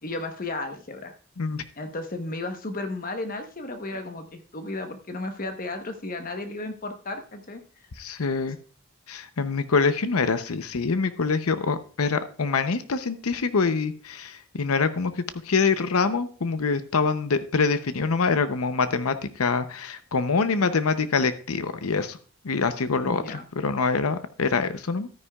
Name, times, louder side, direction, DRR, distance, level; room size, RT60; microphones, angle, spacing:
voice 1, 0.0-1.1 1.7-7.6 23.0-23.4, left 2 dB, 40° left, 7 dB, 1.1 m, -34 dB
voice 2, 8.0-8.6 9.1-15.1 15.5-22.2 22.4-25.1, left 4 dB, 85° left, 11 dB, 0.7 m, -25 dB
13.0 x 9.7 x 2.4 m, 0.40 s
head